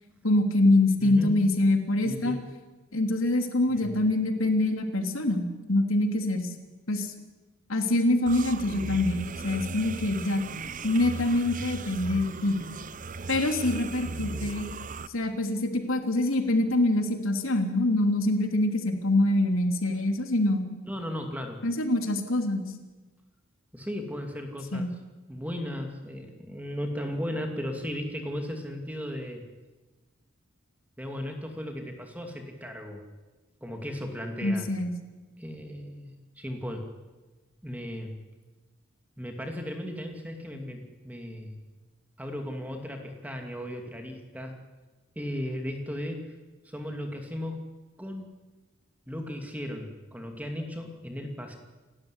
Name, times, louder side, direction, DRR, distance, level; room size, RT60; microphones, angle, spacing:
voice 1, 0.2-2.4 2.9-6.5 6.9-7.1 7.7-10.4 10.8-12.6 13.3-14.7 15.1-20.7 21.6-22.7 24.7-24.9 34.4-34.9, left 1 dB, 75° left, 5 dB, 3.0 m, -25 dB
voice 2, 1.0-1.4 2.0-2.4 3.7-4.1 20.8-21.6 23.7-24.9 25.3-29.4 31.0-33.0 33.6-34.7 35.4-36.1 36.4-36.9 37.6-38.2 39.2-41.6 42.2-44.6 45.2-46.3 46.6-47.6 48.0-48.3 49.1-51.6, equal, 5° right, 3 dB, 2.5 m, -36 dB
sound 1, 8.3-15.1, right 4 dB, 40° right, 0.7 m, -37 dB
29.0 x 12.5 x 9.9 m, 1.2 s
head